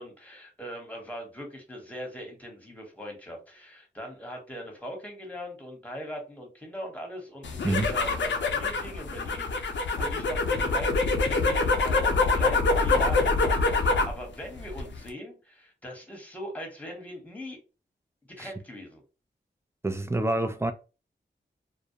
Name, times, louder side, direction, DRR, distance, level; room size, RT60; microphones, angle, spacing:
voice 1, 0.0-17.6 18.3-19.0, equal, 5° left, 1.1 m, -40 dB
sound 1, 7.4-14.2 14.5-15.1, left 3 dB, 70° left, 0.5 m, -25 dB
voice 2, 19.8-20.7, right 2 dB, 15° right, 0.4 m, -27 dB
2.2 x 2.0 x 2.8 m
cardioid pair, 55°, 20 cm